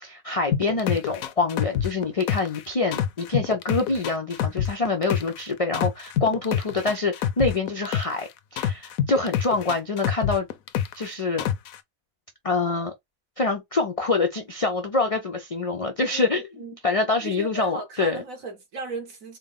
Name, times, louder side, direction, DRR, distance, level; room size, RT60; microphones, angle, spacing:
voice 1, 0.0-10.5 10.9-11.5 12.4-12.9 13.4-16.5 16.8-18.2, left 3 dB, 55° left, 0.3 m, -25 dB
sound 1, 0.5-2.6 2.9-5.4 5.7-8.2 8.6-11.1 11.4-11.8, left 9 dB, 80° left, 1.0 m, -26 dB
voice 2, 16.1-16.8 17.2-19.4, right 3 dB, 75° right, 1.9 m, -36 dB
4.3 x 2.1 x 3.6 m
omnidirectional pair, 1.4 m